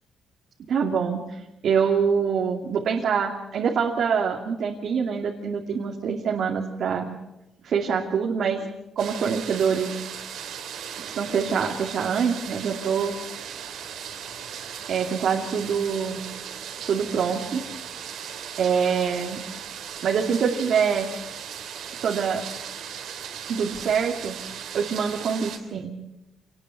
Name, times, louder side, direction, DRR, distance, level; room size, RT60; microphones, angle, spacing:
voice 1, 0.7-7.1 7.6-8.7 9.0-9.9 11.0-13.2 14.9-16.2 16.9-17.6 18.6-19.4 20.0-21.1 22.0-22.4 23.4-24.4 24.7-25.9, right 6 dB, 65° right, 0 dB, 2.6 m, -25 dB
sound 1, 9.0-25.6, right 8 dB, 80° right, 3.3 m, -37 dB
27.0 x 20.5 x 5.7 m, 0.94 s
cardioid pair, 110°, 0 cm